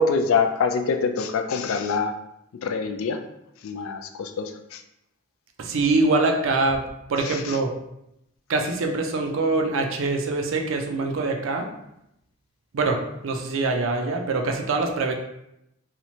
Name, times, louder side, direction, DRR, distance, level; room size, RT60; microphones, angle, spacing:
voice 1, 0.0-2.1 2.6-3.2 3.6-4.8 7.2-7.6, left 4 dB, 75° left, 6 dB, 0.3 m, -25 dB
voice 2, 5.6-6.8 7.1-7.7 8.5-11.7 12.7-15.1, right 3 dB, 65° right, 3 dB, 0.4 m, -24 dB
2.9 x 2.1 x 2.7 m, 0.82 s
head